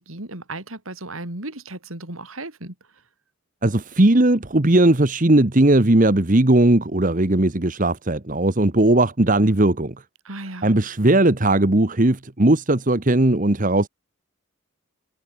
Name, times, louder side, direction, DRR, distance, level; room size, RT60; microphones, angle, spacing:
voice 1, 0.0-2.7 10.2-10.7, right 2 dB, 85° right, 4.3 m, -35 dB
voice 2, 3.6-9.9 10.6-13.9, right 1 dB, 40° right, 1.3 m, -18 dB
head